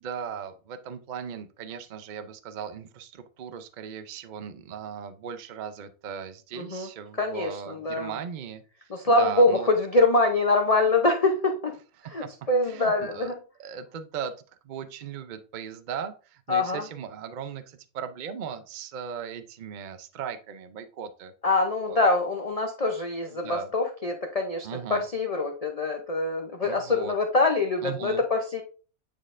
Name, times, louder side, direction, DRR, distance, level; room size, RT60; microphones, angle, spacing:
voice 1, 0.0-9.7 12.0-13.3 13.6-14.3 14.6-21.3 21.9-22.1 23.3-23.7 24.6-25.0 26.6-27.1 27.8-28.2, right 7 dB, 80° right, 10 dB, 0.4 m, -38 dB
voice 2, 6.5-6.9 7.2-8.1 8.9-11.7 12.0-13.4 16.5-16.8 21.4-28.6, left 2 dB, 45° left, 3 dB, 0.4 m, -24 dB
9.3 x 4.1 x 2.5 m, 0.37 s
omnidirectional pair, 1.6 m